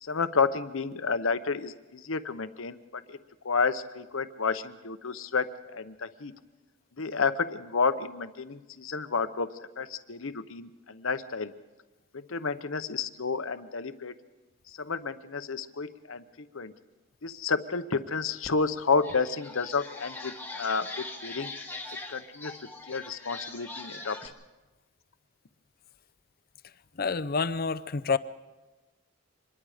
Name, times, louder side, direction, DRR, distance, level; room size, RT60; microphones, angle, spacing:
voice 1, 0.0-3.2 3.4-6.3 7.0-9.5 9.8-11.5 12.1-14.1 14.7-16.2 16.5-16.7 17.2-21.5 22.1-22.5 22.9-24.3, left 4 dB, 70° left, 11 dB, 0.9 m, -30 dB
sound 1, 18.4-18.5 18.9-24.3, left 3 dB, 10° left, 1.4 m, -41 dB
voice 2, 27.0-28.2, left 4 dB, 45° left, 15 dB, 0.6 m, -28 dB
25.0 x 21.5 x 5.0 m, 1.2 s
head